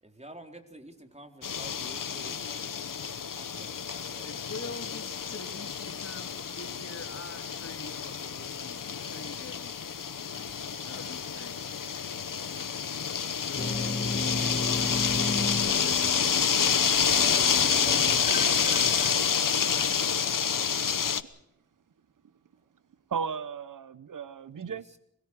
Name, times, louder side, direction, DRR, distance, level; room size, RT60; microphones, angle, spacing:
voice 1, 0.0-3.0 3.3-4.3 17.1-19.8 24.7-25.0, right 1 dB, 20° right, 4.0 m, -48 dB
sound 1, 1.4-21.2, left 7 dB, 85° left, 1.1 m, -28 dB
voice 2, 4.2-9.9 10.3-15.5, left 3 dB, 50° left, 3.2 m, -46 dB
sound 2, 13.5-19.1, left 2 dB, 30° left, 1.7 m, -34 dB
voice 3, 23.1-24.9, right 6 dB, 75° right, 0.8 m, -37 dB
27.0 x 22.0 x 4.8 m
cardioid pair, 45°, 32 cm